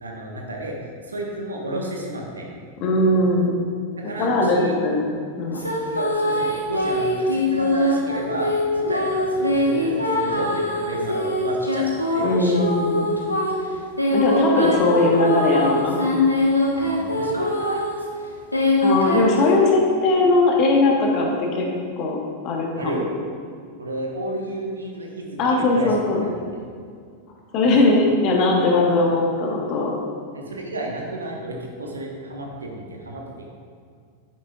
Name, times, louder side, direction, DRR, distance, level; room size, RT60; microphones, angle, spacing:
voice 1, 0.0-0.8 1.1-2.5 4.0-4.8 5.9-11.9 12.1-12.3 16.7-17.8 22.8-23.1 23.8-26.0 26.2-26.4 30.3-33.5, right 1 dB, 75° right, 0 dB, 1.4 m, -32 dB
voice 2, 2.8-3.6 4.2-5.1 5.4-5.6 12.2-13.1 14.1-16.0 18.8-21.7 22.0-22.2 22.4-23.0 25.4-26.2 27.5-29.9, left 2 dB, 40° left, 0 dB, 1.5 m, -19 dB
sound 1, 5.5-18.0 18.5-19.5, left 1 dB, 85° left, 1.3 m, -22 dB
10.5 x 9.2 x 2.5 m, 2.2 s
figure-of-eight pair, 90°, 0 cm